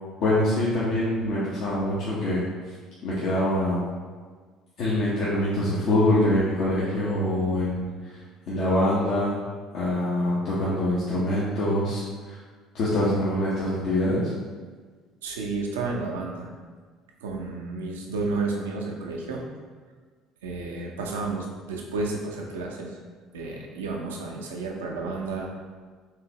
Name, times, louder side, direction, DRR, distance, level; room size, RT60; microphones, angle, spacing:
voice 1, 0.2-2.4 3.0-3.8 4.8-8.2 8.5-9.4 9.7-12.4 12.7-14.3, left 1 dB, 60° left, -8 dB, 1.0 m, -24 dB
voice 2, 15.2-16.5 17.2-19.4 20.4-23.0 23.3-25.5, right 3 dB, 85° right, 0 dB, 0.6 m, -31 dB
4.8 x 3.3 x 2.9 m, 1.5 s
hypercardioid pair, 65°, 0 cm